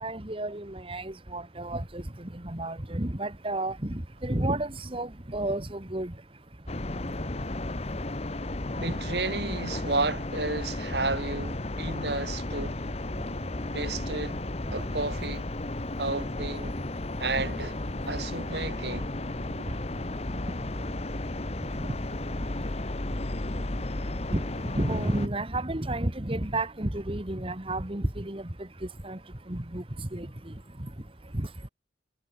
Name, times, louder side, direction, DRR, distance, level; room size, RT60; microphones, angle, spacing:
voice 1, 0.0-6.1 17.4-17.7 21.9-22.0 24.3-28.5 29.0-29.2 29.5-30.3 31.3-31.5, right 1 dB, 30° right, 1.8 m, -31 dB
sound 1, 6.7-25.3, left 2 dB, 35° left, 1.2 m, -33 dB
voice 2, 8.8-12.8 13.7-14.4 14.7-15.4 16.0-16.8 17.2-17.7 18.0-19.1, right 3 dB, 65° right, 3.4 m, -32 dB
head